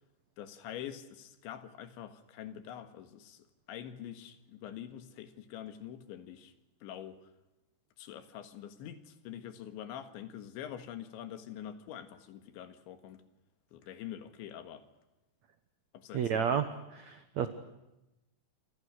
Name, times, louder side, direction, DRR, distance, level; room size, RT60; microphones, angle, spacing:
voice 1, 0.4-6.5 6.8-7.2 8.0-13.2 13.7-14.9 15.9-16.6, left 10 dB, 85° left, 10 dB, 4.0 m, -45 dB
voice 2, 16.1-16.6 16.9-17.5, right 8 dB, 80° right, 10 dB, 1.5 m, -30 dB
29.0 x 25.0 x 6.5 m, 0.97 s
omnidirectional pair, 5.2 m